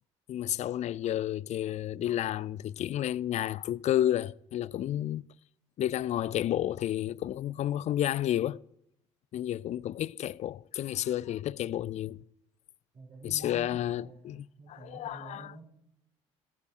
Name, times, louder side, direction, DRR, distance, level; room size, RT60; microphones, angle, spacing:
voice 1, 0.3-5.3 5.8-8.6 9.3-12.2 13.2-15.5, left 12 dB, 45° left, 0.4 m, -31 dB
voice 2, 12.9-15.6, right 2 dB, 45° right, 4.6 m, -48 dB
15.0 x 6.6 x 4.9 m
hypercardioid pair, 55°, 16 cm